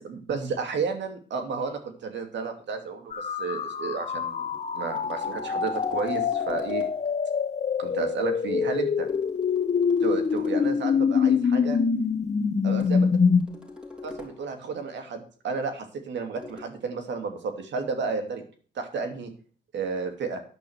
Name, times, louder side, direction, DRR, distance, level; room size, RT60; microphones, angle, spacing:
voice 1, 0.0-6.8 7.8-9.1 10.0-11.8 12.6-13.1 14.0-18.4 18.7-19.3 19.7-20.4, right 5 dB, 65° right, 6 dB, 2.7 m, -32 dB
sound 1, 3.1-13.4, left 6 dB, 35° left, 1.0 m, -25 dB
sound 2, 4.3-7.1 9.1-10.8 12.8-14.6 16.4-16.6, left 3 dB, 5° right, 3.8 m, -44 dB
10.5 x 5.8 x 8.1 m, 0.42 s
cardioid pair, 90°, 20 cm